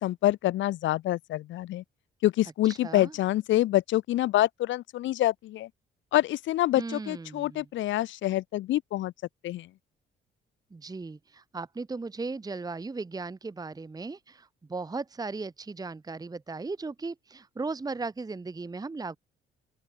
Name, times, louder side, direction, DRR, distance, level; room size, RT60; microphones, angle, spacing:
voice 1, 0.0-1.8 2.2-5.7 6.1-9.1 9.4-9.7, left 15 dB, 70° left, 0.5 m, -26 dB
voice 2, 2.7-3.1 6.7-7.7 10.7-19.2, right 3 dB, 20° right, 1.0 m, -37 dB
open air
cardioid pair, 90°, 20 cm